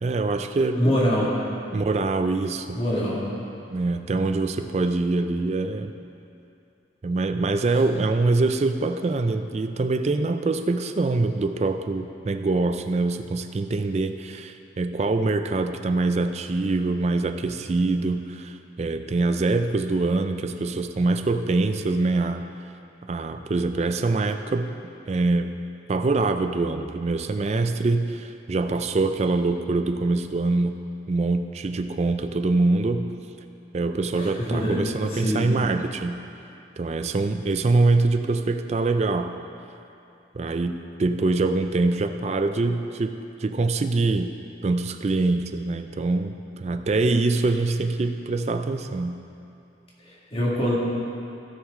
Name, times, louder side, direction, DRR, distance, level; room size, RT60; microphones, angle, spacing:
voice 1, 0.0-1.0 1.7-2.8 3.7-5.9 7.0-22.4 23.1-24.8 25.1-25.6 25.9-30.8 31.1-33.1 33.7-36.2 36.8-39.4 40.3-43.1 43.4-44.3 44.6-49.2, right 3 dB, 35° right, 8 dB, 0.3 m, -24 dB
voice 2, 0.8-1.3 2.7-3.2 34.2-34.8 35.1-35.5 50.1-50.8, equal, 30° left, -6 dB, 1.8 m, -24 dB
16.0 x 6.2 x 3.7 m, 2.7 s
head